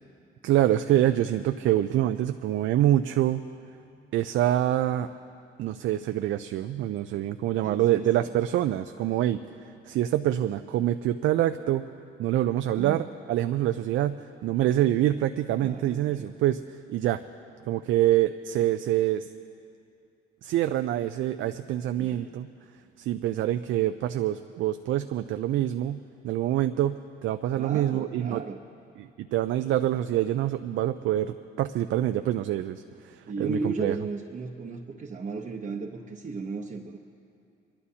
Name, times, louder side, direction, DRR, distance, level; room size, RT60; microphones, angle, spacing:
voice 1, 0.4-3.4 4.1-5.1 5.6-9.4 9.9-11.8 12.2-16.6 16.9-17.2 17.7-19.3 20.4-22.5 23.0-28.4 29.0-33.9, right 13 dB, 75° right, 9 dB, 0.4 m, -26 dB
voice 2, 7.6-8.3 12.7-13.0 15.6-16.3 22.0-22.3 27.6-28.6 33.3-37.0, right 4 dB, 40° right, 0 dB, 0.8 m, -35 dB
27.0 x 12.0 x 2.8 m, 2.5 s
cardioid pair, 90°, 20 cm